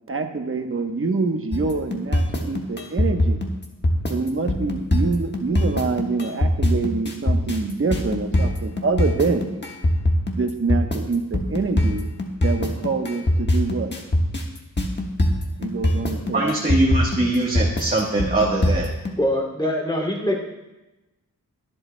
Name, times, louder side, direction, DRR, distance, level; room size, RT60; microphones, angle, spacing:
voice 1, 0.1-3.4 4.1-9.5 10.4-12.1 12.4-13.9 15.6-16.8, right 4 dB, 40° right, 5 dB, 1.0 m, -25 dB
sound 1, 1.5-19.1, left 1 dB, 35° left, 1.4 m, -21 dB
voice 2, 16.3-18.9, right 2 dB, 25° right, -3 dB, 1.3 m, -22 dB
voice 3, 19.2-20.4, left 1 dB, 15° left, -2 dB, 2.5 m, -23 dB
22.5 x 7.7 x 2.2 m, 1.0 s
wide cardioid pair, 125°, 33 cm